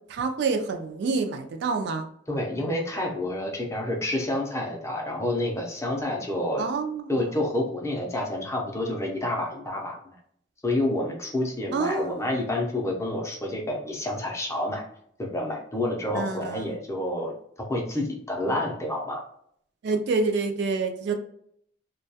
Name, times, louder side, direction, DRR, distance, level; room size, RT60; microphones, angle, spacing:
voice 1, 0.1-2.0 6.6-7.1 11.7-12.3 16.1-16.8 19.8-21.1, right 4 dB, 60° right, 5 dB, 0.3 m, -27 dB
voice 2, 2.3-6.6 7.1-10.0 10.6-14.8 15.2-19.2, left 1 dB, 15° left, 0 dB, 0.5 m, -29 dB
2.2 x 2.2 x 2.7 m, 0.67 s
head